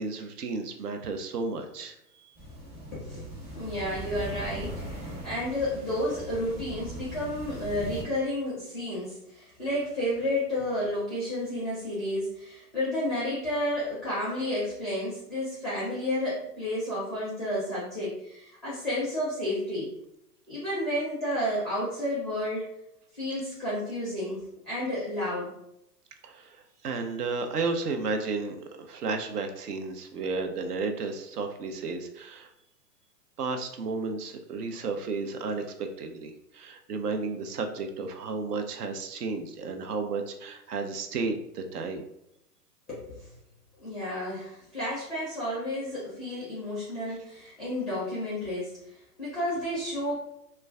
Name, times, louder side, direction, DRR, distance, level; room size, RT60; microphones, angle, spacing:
voice 1, 0.0-2.3 26.2-32.5 33.4-42.0, right 4 dB, 75° right, 5 dB, 0.6 m, -33 dB
sound 1, 2.4-8.0, right 1 dB, 20° right, 0.9 m, -40 dB
voice 2, 2.9-19.9 20.5-22.7 23.1-25.5 42.9-43.3 43.8-48.7 49.2-50.1, left 1 dB, ahead, -8 dB, 0.4 m, -31 dB
2.2 x 2.2 x 3.5 m, 0.80 s
figure-of-eight pair, 115°, 48 cm